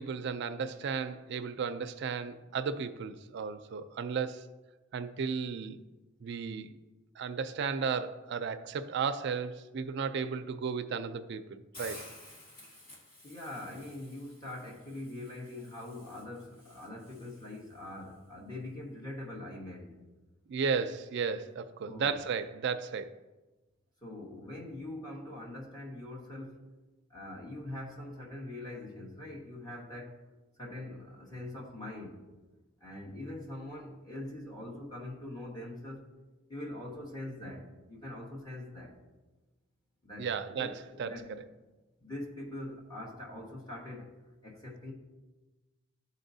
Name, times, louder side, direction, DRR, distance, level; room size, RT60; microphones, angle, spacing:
voice 1, 0.0-4.4 4.9-5.8 6.2-6.7 7.2-12.0 20.5-23.2 40.2-41.1, right 5 dB, 55° right, 0.3 m, -34 dB
Hiss, 11.7-17.8, left 1 dB, 45° left, 1.9 m, -53 dB
voice 2, 13.2-20.0 21.9-22.2 24.0-26.7 27.1-30.2 30.6-32.3 32.8-36.1 36.5-39.0 40.0-40.3 40.6-41.4 42.0-44.9, left 1 dB, 20° left, 1.1 m, -43 dB
12.0 x 4.1 x 2.7 m
head